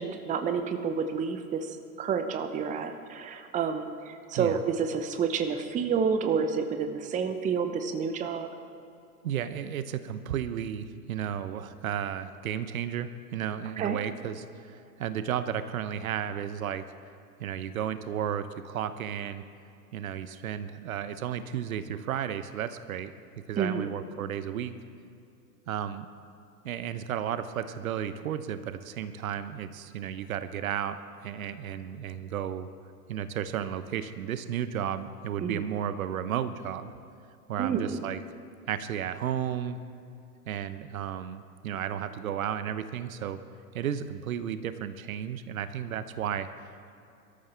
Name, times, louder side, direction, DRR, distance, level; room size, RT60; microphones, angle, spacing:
voice 1, 0.0-8.5 13.8-14.0 23.6-23.9 35.4-35.6 37.6-38.0, right 6 dB, 15° right, 7 dB, 0.8 m, -29 dB
voice 2, 9.2-16.8 17.4-19.4 19.9-23.1 23.5-24.7 25.7-26.1 26.6-32.7 33.1-36.9 37.5-38.2 38.7-39.8 40.5-43.4 43.7-46.5, right 9 dB, 60° right, 12 dB, 0.9 m, -33 dB
23.0 x 13.5 x 3.4 m, 2.6 s
figure-of-eight pair, 100°, 47 cm